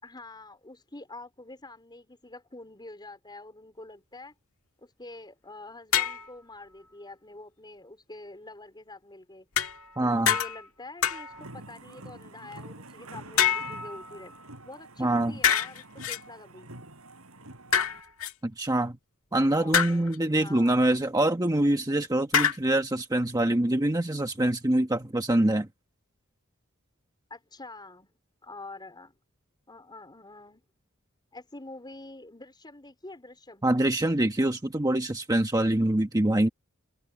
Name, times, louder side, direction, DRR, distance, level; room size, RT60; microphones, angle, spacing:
voice 1, 0.0-4.3 4.8-9.5 10.0-14.3 14.6-16.7 19.6-20.8 27.3-28.1 28.4-29.1 29.7-30.6 31.3-33.7, left 2 dB, 20° left, 4.5 m, -46 dB
sound 1, 5.9-6.3 9.6-10.0 10.3-10.7 11.0-11.5 13.4-14.4 15.4-16.2 17.7-18.3 19.7-20.2 22.3-22.6, left 8 dB, 80° left, 1.6 m, -26 dB
voice 2, 10.0-10.3 15.0-15.3 18.4-19.0 19.3-25.7 33.6-36.5, right 1 dB, 15° right, 1.2 m, -25 dB
sound 2, 11.3-18.0, right 2 dB, 85° right, 8.0 m, -47 dB
head